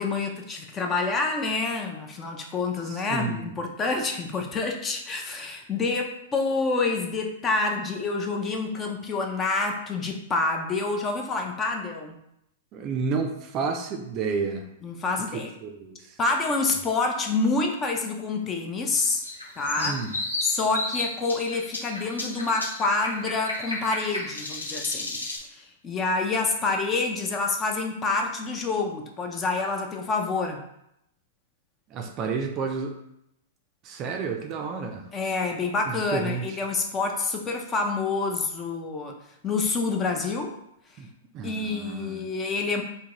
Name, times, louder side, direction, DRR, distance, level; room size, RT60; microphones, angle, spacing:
voice 1, 0.0-12.2 14.8-15.5 16.2-19.2 19.6-20.0 20.4-25.2 25.5-30.6 35.1-39.1 39.4-40.5 41.4-42.8, left 3 dB, 25° left, 3 dB, 0.5 m, -27 dB
voice 2, 2.8-3.5 12.7-14.7 15.6-16.2 19.8-20.1 31.9-32.9 33.8-35.1 35.9-36.6 41.0-41.1 41.3-42.2, right 5 dB, 35° right, 4 dB, 0.4 m, -31 dB
sound 1, 19.2-25.4, left 2 dB, 90° left, 0.6 m, -33 dB
3.5 x 2.2 x 2.9 m, 0.78 s
figure-of-eight pair, 105°, 0 cm